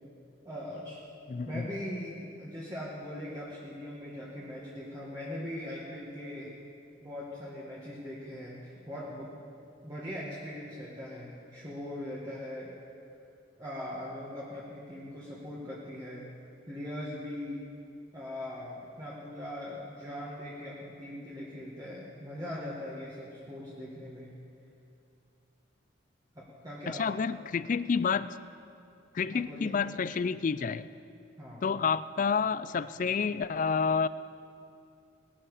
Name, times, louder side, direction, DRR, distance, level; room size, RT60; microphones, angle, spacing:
voice 1, 0.4-1.0 1.5-6.5 7.0-9.3 9.8-12.7 13.6-16.3 16.7-17.7 18.1-24.3 26.3-27.1 29.3-29.7 31.4-31.7, left 1 dB, 20° right, -7 dB, 1.7 m, -40 dB
voice 2, 1.3-1.7 26.9-28.4 29.1-30.9 31.6-34.1, left 5 dB, 40° left, 15 dB, 0.3 m, -29 dB
19.0 x 11.5 x 5.0 m, 2.5 s
head